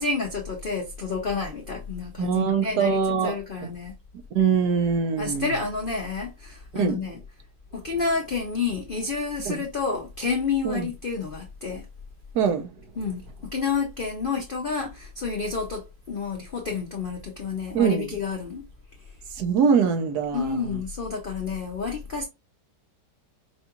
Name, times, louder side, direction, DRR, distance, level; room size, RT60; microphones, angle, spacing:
voice 1, 0.0-3.9 5.2-7.2 7.7-11.8 13.0-13.2 13.5-18.6 20.3-22.2, left 4 dB, 90° left, 0.4 m, -29 dB
voice 2, 2.2-3.7 4.3-5.5 6.7-7.0 9.5-9.6 10.6-10.9 12.3-12.7 17.7-18.1 19.4-20.8, right 6 dB, 70° right, 1.2 m, -23 dB
5.3 x 2.3 x 2.9 m
omnidirectional pair, 1.9 m